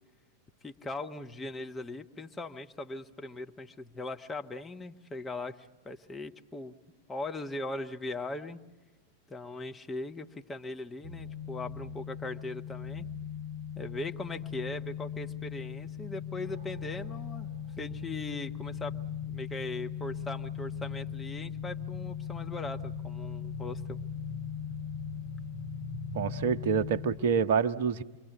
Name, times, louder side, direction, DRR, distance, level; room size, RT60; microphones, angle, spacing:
voice 1, 0.6-6.8 7.1-8.6 9.3-13.1 13.8-17.5 17.8-18.9 19.2-24.0, left 2 dB, 15° left, 5 dB, 1.1 m, -39 dB
sound 1, 11.0-27.2, left 7 dB, 75° left, 3.7 m, -39 dB
voice 2, 26.1-28.0, right 6 dB, 55° right, 13 dB, 0.8 m, -27 dB
28.5 x 23.5 x 7.1 m, 1.1 s
figure-of-eight pair, 90°, 0 cm